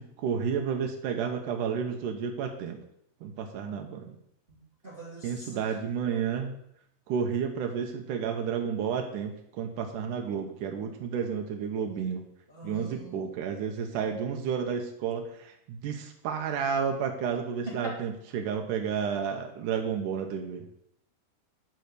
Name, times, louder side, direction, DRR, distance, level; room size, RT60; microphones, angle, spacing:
voice 1, 0.0-2.8 3.2-4.2 5.2-6.5 7.1-12.2 12.6-20.7, right 7 dB, 85° right, 3 dB, 1.8 m, -31 dB
voice 2, 4.8-6.3 12.5-13.4, right 2 dB, 20° right, -6 dB, 1.8 m, -46 dB
12.0 x 4.6 x 6.6 m, 0.74 s
omnidirectional pair, 5.0 m